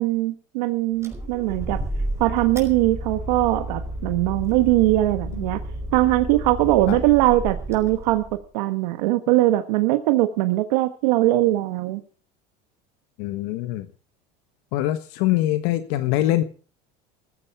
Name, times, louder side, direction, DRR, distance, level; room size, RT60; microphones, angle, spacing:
voice 1, 0.0-1.8 2.2-5.6 5.9-8.2 8.5-12.0, right 17 dB, 90° right, 8 dB, 1.3 m, -21 dB
sound 1, 1.0-8.4, right 1 dB, 15° right, 5.2 m, -32 dB
voice 2, 13.2-13.9 14.7-16.4, left 14 dB, 75° left, 11 dB, 1.4 m, -23 dB
15.0 x 14.5 x 4.7 m, 0.41 s
supercardioid pair, 110°, 21 cm